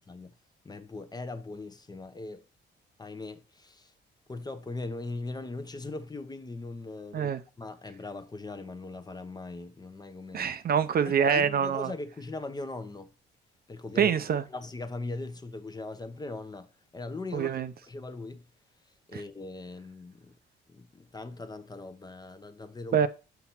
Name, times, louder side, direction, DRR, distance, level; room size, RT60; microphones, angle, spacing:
voice 1, 0.6-2.5 3.0-3.9 4.3-7.3 7.6-10.5 11.1-13.1 13.7-14.1 14.5-17.5 17.8-18.4 19.1-20.3 20.7-23.0, left 2 dB, 20° left, 0.8 m, -40 dB
voice 2, 10.3-11.9 14.0-14.4 17.3-17.7 19.1-19.2 22.9-23.1, right 7 dB, 50° right, 0.6 m, -25 dB
5.9 x 5.5 x 4.3 m
cardioid pair, 90°, 20 cm